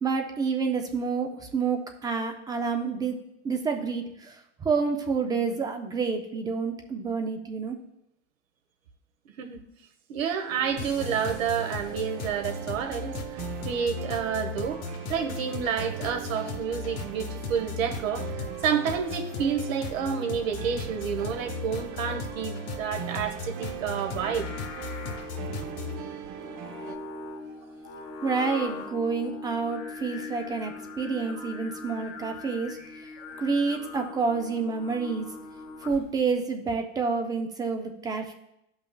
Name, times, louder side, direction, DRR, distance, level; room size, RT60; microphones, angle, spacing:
voice 1, 0.0-3.2 3.4-7.8 28.2-32.8 33.4-35.3 35.8-38.3, right 5 dB, 10° right, 5 dB, 0.3 m, -28 dB
voice 2, 10.1-13.1 13.6-24.5 25.6-25.7 31.2-31.5, right 7 dB, 75° right, 6 dB, 1.2 m, -30 dB
sound 1, 10.5-27.0, right 9 dB, 50° right, 0.8 m, -40 dB
sound 2, 10.8-26.0, left 5 dB, 35° left, 1.0 m, -37 dB
Singing, 24.0-36.2, left 4 dB, 75° left, 1.7 m, -41 dB
12.5 x 5.5 x 2.3 m, 0.81 s
supercardioid pair, 130°, 39 cm